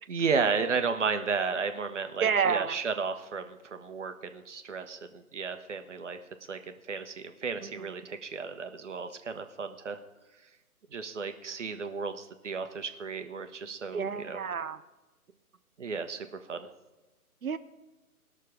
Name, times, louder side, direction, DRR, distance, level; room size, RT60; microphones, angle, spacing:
voice 1, 0.1-6.2 6.5-10.0 10.9-14.4 15.8-16.7, right 5 dB, 50° right, 8 dB, 1.2 m, -33 dB
voice 2, 2.2-2.8 7.6-7.9 13.9-14.8 17.4-17.6, right 6 dB, 70° right, 13 dB, 0.8 m, -29 dB
19.0 x 6.6 x 5.0 m, 1.1 s
figure-of-eight pair, 145°, 45 cm